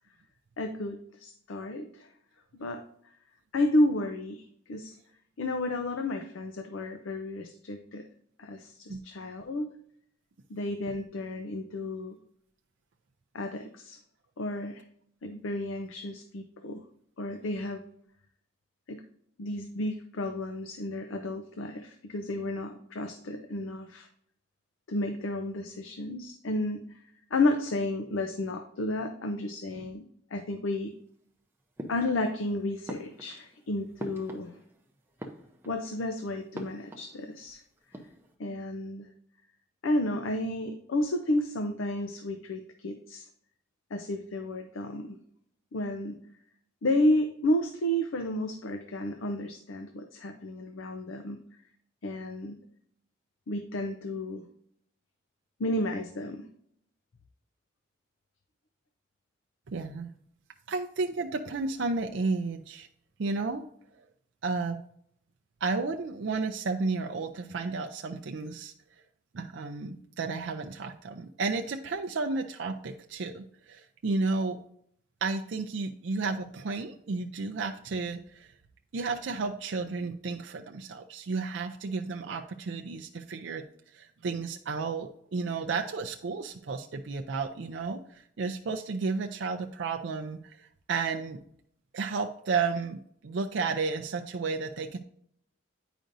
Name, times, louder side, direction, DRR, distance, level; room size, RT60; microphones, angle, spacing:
voice 1, 0.6-2.1 2.5-2.8 3.5-4.9 5.4-8.0 8.4-9.7 10.5-12.2 13.3-14.0 14.4-14.8 15.2-16.8 17.2-17.8 18.9-19.0 19.4-24.1 24.9-30.0 30.3-31.0 31.9-34.5 35.7-37.6 38.4-39.1 39.8-43.3 43.9-45.2 45.7-46.2 46.8-51.4 52.0-52.6 53.5-54.5 55.6-56.5, left 1 dB, 75° left, 7 dB, 0.6 m, -32 dB
sound 1, 31.8-32.5 32.8-34.8 35.1-35.9 36.5-37.5 37.8-38.3, equal, 10° right, 0.6 m, -44 dB
voice 2, 59.7-60.1 60.7-62.9 63.2-63.7 64.4-64.8 65.6-68.7 69.3-74.6 75.2-78.5 78.9-83.6 83.9-91.4 91.9-95.0, right 4 dB, 60° right, 3 dB, 0.4 m, -32 dB
9.0 x 5.1 x 2.6 m, 0.67 s
head